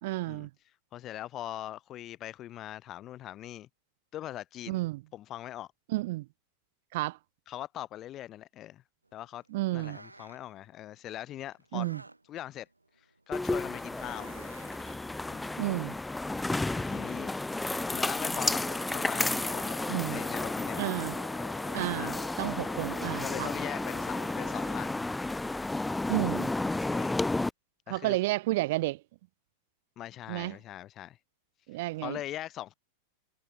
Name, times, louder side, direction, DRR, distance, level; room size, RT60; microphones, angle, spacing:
voice 1, 0.0-0.5 4.7-5.0 5.9-6.3 6.9-7.2 9.5-10.0 11.7-12.0 15.6-15.9 19.9-20.2 20.8-21.1 21.7-23.5 26.1-26.5 27.9-29.0 30.3-30.6 31.7-32.2, right 20 dB, 50° right, 0.6 m, -31 dB
voice 2, 0.9-3.7 4.1-4.8 5.1-5.7 7.5-8.8 9.1-9.4 9.7-11.9 12.3-12.7 13.3-14.3 15.3-15.5 16.7-17.3 17.8-18.6 18.9-19.8 20.1-20.8 22.0-22.2 23.2-25.0 26.9-27.2 27.9-28.2 30.0-31.2 31.7-32.7, left 13 dB, 30° left, 0.8 m, -41 dB
sound 1, 9.0-15.5, right 2 dB, 85° right, 1.4 m, -54 dB
sound 2, 13.3-27.5, left 2 dB, 5° left, 0.4 m, -32 dB
sound 3, 18.6-24.9, left 4 dB, 75° left, 3.2 m, -51 dB
figure-of-eight pair, 90°, 0 cm